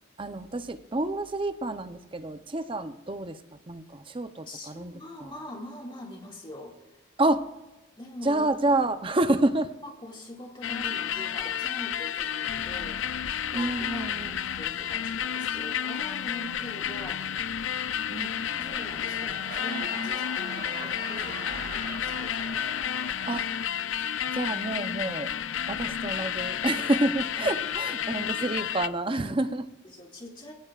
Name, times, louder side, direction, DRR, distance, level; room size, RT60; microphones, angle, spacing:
voice 1, 0.2-5.3 7.2-7.4 8.2-9.7 13.5-14.4 18.1-18.3 23.3-23.5 24.3-25.3 25.7-29.7, right 2 dB, 25° right, 9 dB, 0.7 m, -28 dB
voice 2, 4.5-6.8 8.0-8.4 9.8-13.0 13.5-17.3 18.5-22.7 25.8-25.9 27.4-28.1 29.8-30.5, left 1 dB, 25° left, 0 dB, 2.2 m, -43 dB
sound 1, 10.6-28.9, left 9 dB, 70° left, 0.4 m, -31 dB
sound 2, 18.2-24.1 24.5-24.8, right 3 dB, 45° right, 1.2 m, -43 dB
20.0 x 17.0 x 2.5 m, 1.1 s
head